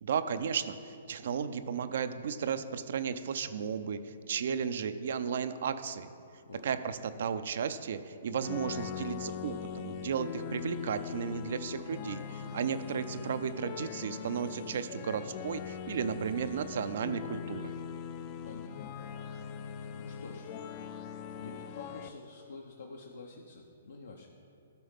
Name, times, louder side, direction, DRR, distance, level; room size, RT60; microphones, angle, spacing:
voice 1, 0.0-6.1 6.6-17.7, right 7 dB, 60° right, 11 dB, 0.5 m, -34 dB
sound 1, 8.4-22.1, left 8 dB, 35° left, 0.4 m, -41 dB
voice 2, 18.3-18.8 19.3-19.5 19.8-20.6 21.0-24.3, left 3 dB, 70° left, 1 dB, 0.7 m, -49 dB
13.0 x 5.4 x 3.6 m, 2.5 s
figure-of-eight pair, 120°, 0 cm